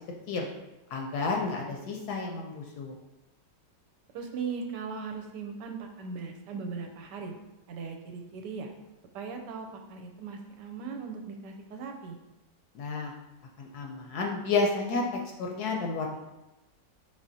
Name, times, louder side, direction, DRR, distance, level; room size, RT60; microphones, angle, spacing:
voice 1, 0.9-3.0 12.7-13.1 13.6-15.0 15.4-16.2, left 3 dB, 70° left, 1 dB, 1.0 m, -31 dB
voice 2, 4.1-7.3 7.7-8.7 9.1-12.2, right 5 dB, 80° right, 4 dB, 1.2 m, -38 dB
5.1 x 3.3 x 2.7 m, 0.99 s
omnidirectional pair, 1.9 m